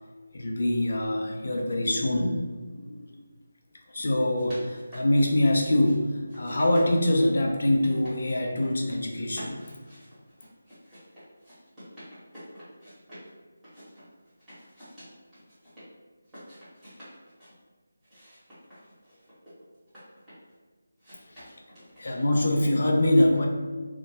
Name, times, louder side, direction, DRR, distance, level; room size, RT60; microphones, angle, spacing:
voice 1, 0.3-2.4 2.7-3.2 3.9-9.7 21.3-21.5 22.0-23.5, left 1 dB, 60° left, 1 dB, 0.4 m, -24 dB
sound 1, 4.3-6.0 6.3-8.2 8.5-9.0 9.3-13.3 13.6-15.9 16.2-17.5 18.0-20.5 21.0-22.5, equal, 5° right, 1.0 m, -47 dB
2.1 x 2.1 x 2.8 m, 1.3 s
figure-of-eight pair, 165°, 0 cm